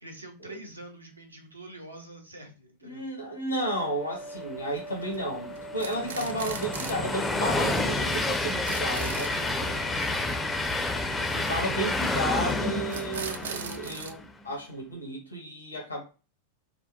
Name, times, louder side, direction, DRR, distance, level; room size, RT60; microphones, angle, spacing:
voice 1, 0.0-3.0 9.6-10.2, right 1 dB, 85° right, 0.7 m, -46 dB
voice 2, 2.8-9.9 11.2-16.0, right 1 dB, 80° left, 1.0 m, -33 dB
sound 1, 3.6-13.4, right 1 dB, 60° left, 0.7 m, -43 dB
Train, 4.8-14.2, left 2 dB, 10° left, 0.4 m, -30 dB
sound 2, 4.8-5.2 5.6-7.1 7.4-7.5 7.7-7.8 8.1-8.2 8.4-9.4 12.2-12.5 12.9-14.1, right 6 dB, 65° right, 0.3 m, -39 dB
3.5 x 2.2 x 2.5 m
figure-of-eight pair, 90°, 0 cm